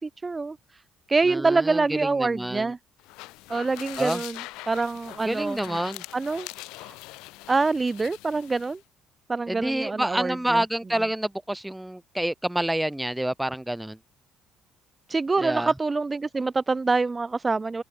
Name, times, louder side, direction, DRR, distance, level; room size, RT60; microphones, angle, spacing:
voice 1, 0.0-0.6 1.1-2.8 3.5-5.8 6.1-6.5 6.8-6.9 7.5-8.8 9.3-10.6 15.1-17.8, right 3 dB, 25° right, 2.1 m, -25 dB
voice 2, 1.3-2.7 3.9-4.2 5.2-6.0 9.5-14.0 15.4-15.7, right 1 dB, 5° right, 1.5 m, -28 dB
sound 1, 3.0-8.8, left 22 dB, 85° left, 2.0 m, -42 dB
cardioid pair, 90°, 0 cm